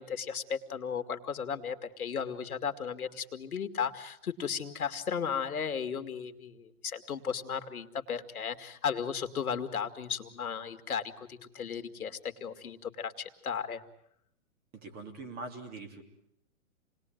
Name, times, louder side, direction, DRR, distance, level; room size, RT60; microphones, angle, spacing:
voice 1, 0.0-13.8, left 7 dB, 85° left, 8 dB, 2.3 m, -35 dB
voice 2, 14.7-16.0, right 3 dB, 20° right, 5 dB, 3.1 m, -43 dB
28.5 x 20.5 x 9.2 m, 0.72 s
hypercardioid pair, 150°, 43 cm